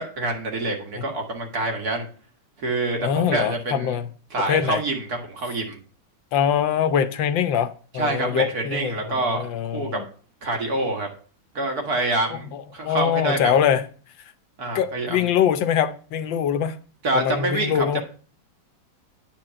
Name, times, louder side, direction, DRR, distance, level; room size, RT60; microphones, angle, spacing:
voice 1, 0.0-2.1 2.6-4.0 4.3-5.8 7.9-10.0 10.4-11.1 11.5-13.5 14.6-15.3 17.0-18.0, right 2 dB, 50° right, 2.2 m, -26 dB
voice 2, 3.0-4.0 4.5-4.8 6.3-10.0 12.3-13.8 14.7-16.7 17.1-18.0, left 8 dB, 75° left, 1.4 m, -23 dB
10.0 x 4.5 x 7.5 m
omnidirectional pair, 2.1 m